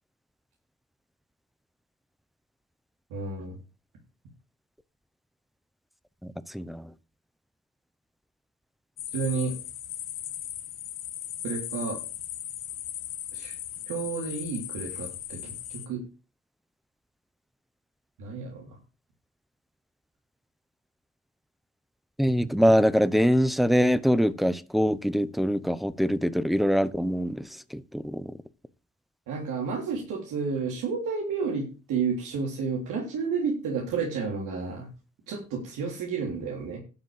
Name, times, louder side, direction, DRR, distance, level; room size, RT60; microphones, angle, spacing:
voice 1, 3.1-3.6 9.1-9.5 11.4-12.0 13.3-13.5 13.9-16.0 18.2-18.8 29.3-34.9 35.3-36.8, right 5 dB, 90° right, 3.3 m, -31 dB
voice 2, 6.2-6.9 22.2-28.3, equal, ahead, 0.8 m, -24 dB
sound 1, 9.0-15.9, left 11 dB, 85° left, 1.8 m, -37 dB
11.5 x 5.1 x 7.3 m
cardioid pair, 90°, 30 cm